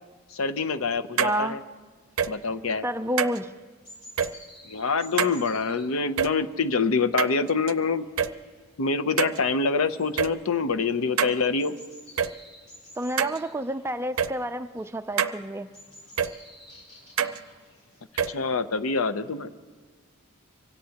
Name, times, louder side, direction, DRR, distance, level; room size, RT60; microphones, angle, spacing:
voice 1, 0.3-1.6 2.3-2.8 4.7-8.1 8.8-11.7 18.3-19.5, left 4 dB, 80° left, 12 dB, 0.6 m, -26 dB
voice 2, 1.2-1.6 2.8-3.5 13.0-15.7, equal, 10° right, 9 dB, 0.3 m, -29 dB
sound 1, 1.2-1.3 2.2-2.3 3.2-3.4 4.2-4.3 5.2-5.3 6.2-6.3 7.2-7.7 8.2-8.3 9.2-9.4 10.2-10.3 11.2-11.3 12.2-12.3 13.2-13.4 14.2-14.3 15.2-15.3 16.2-16.3 17.2-17.4 18.2-18.3, right 7 dB, 70° right, 0.5 m, -25 dB
sound 2, 2.0-18.0, left 1 dB, 50° left, 6.2 m, -53 dB
24.5 x 17.0 x 2.9 m, 1.4 s
head